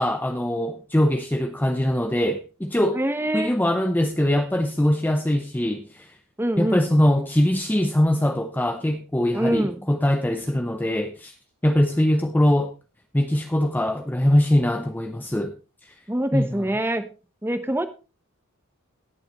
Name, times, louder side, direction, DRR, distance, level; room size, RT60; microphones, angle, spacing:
voice 1, 0.0-3.0 3.3-6.1 6.6-11.3 11.6-12.7 13.1-15.5 15.8-15.9 16.3-16.6, left 1 dB, 10° left, 0.6 m, -22 dB
voice 2, 2.9-3.5 6.4-6.8 9.3-9.8 16.1-17.0 17.4-17.9, right 1 dB, 10° right, 1.0 m, -24 dB
18.5 x 7.1 x 3.1 m
head